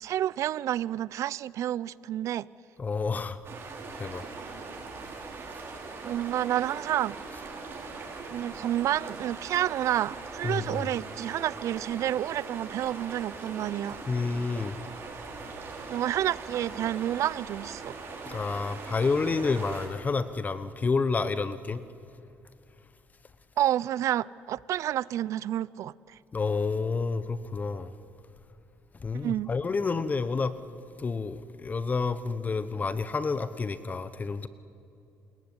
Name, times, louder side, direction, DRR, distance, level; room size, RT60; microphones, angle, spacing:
voice 1, 0.0-2.5 6.0-7.2 8.3-14.0 15.9-17.9 23.6-26.2 29.1-29.5, right 12 dB, 65° right, 0.6 m, -29 dB
voice 2, 2.8-3.4 4.0-4.2 10.4-10.9 14.1-14.8 18.3-21.8 26.3-27.9 29.0-30.5 31.0-34.5, left 4 dB, 30° left, 1.1 m, -29 dB
sound 1, 3.4-19.9, right 4 dB, 45° right, 6.5 m, -41 dB
28.5 x 21.5 x 9.8 m
cardioid pair, 95°, 6 cm